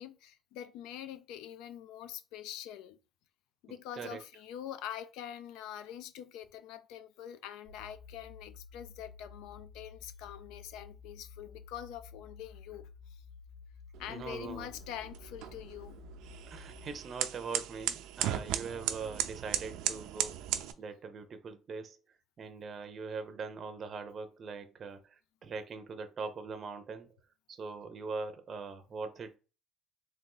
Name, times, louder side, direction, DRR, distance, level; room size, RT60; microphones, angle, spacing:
voice 1, 0.0-3.0 3.6-13.2 14.0-16.0, left 10 dB, 90° left, 0.4 m, -45 dB
voice 2, 3.7-4.3 14.1-14.7 16.5-20.4 20.8-22.0 22.4-27.1 27.5-29.4, right 4 dB, 35° right, 0.5 m, -42 dB
sound 1, 7.7-16.9, left 5 dB, 50° left, 1.9 m, -52 dB
sound 2, 13.9-20.7, right 12 dB, 90° right, 0.4 m, -37 dB
3.8 x 2.5 x 3.8 m
cardioid pair, 150°, 0 cm